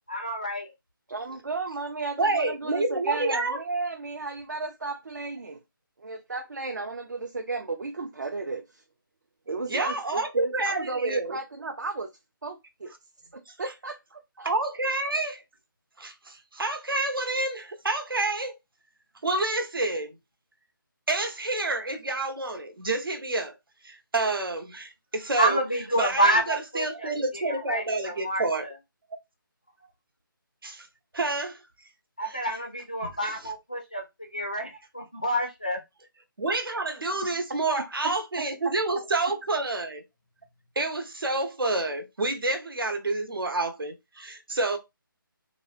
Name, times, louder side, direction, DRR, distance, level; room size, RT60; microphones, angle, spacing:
voice 1, 0.1-0.7 25.4-27.1 27.5-28.4 32.2-34.0 34.3-35.8, right 1 dB, 20° left, 0.4 m, -28 dB
voice 2, 1.1-5.6 6.0-8.8 9.5-12.1 12.4-12.9 13.3-14.5 38.4-38.5, right 3 dB, 55° right, 0.4 m, -34 dB
voice 3, 2.2-3.6 9.7-11.4 13.5-13.6 14.4-15.4 16.0-18.6 19.2-20.1 21.1-23.5 23.8-25.6 26.0-28.7 30.6-30.9 31.1-31.6 32.2-32.6 33.0-33.5 36.4-40.0 40.8-44.8, right 2 dB, 75° right, 0.9 m, -29 dB
3.4 x 2.1 x 2.4 m
figure-of-eight pair, 180°, 12 cm